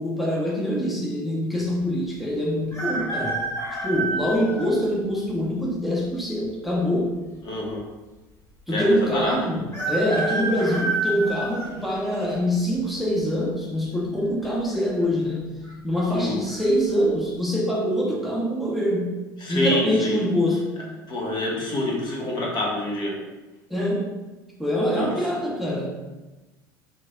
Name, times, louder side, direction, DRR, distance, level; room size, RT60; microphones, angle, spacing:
voice 1, 0.0-3.4 3.8-7.2 8.7-15.5 15.8-19.1 19.5-20.7 23.7-24.1 24.6-25.9, equal, ahead, -3 dB, 0.7 m, -24 dB
sound 1, 2.7-4.7 5.4-5.5 6.6-7.2 7.5-7.6 7.8-7.9 9.7-12.3 12.9-13.3 14.4-14.8 15.0-15.1 15.6-16.0 16.5-16.7, right 2 dB, 25° left, 1.2 m, -29 dB
voice 2, 7.4-7.8 8.7-9.5 10.7-10.8 16.1-16.4 19.4-20.2 21.1-23.2 24.9-25.1, left 1 dB, 40° left, -2 dB, 1.1 m, -26 dB
3.3 x 3.1 x 2.6 m, 1.1 s
hypercardioid pair, 70°, 11 cm